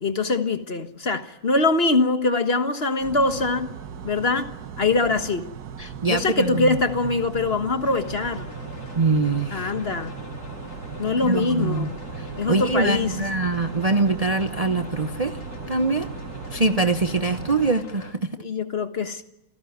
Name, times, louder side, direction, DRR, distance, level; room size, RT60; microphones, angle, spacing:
voice 1, 0.0-3.7 4.0-4.5 4.8-5.5 6.1-8.5 9.5-10.1 11.0-12.0 12.4-13.3 18.4-19.2, left 3 dB, 40° left, 1.6 m, -23 dB
sound 1, 3.0-17.8, right 7 dB, 80° right, 1.7 m, -37 dB
voice 2, 5.8-6.8 9.0-9.7 11.2-11.9 12.5-15.3 15.7-16.1 16.5-18.2, right 3 dB, 30° right, 0.9 m, -23 dB
sound 2, 7.8-18.1, left 4 dB, 80° left, 2.8 m, -41 dB
28.0 x 17.5 x 9.4 m
omnidirectional pair, 1.6 m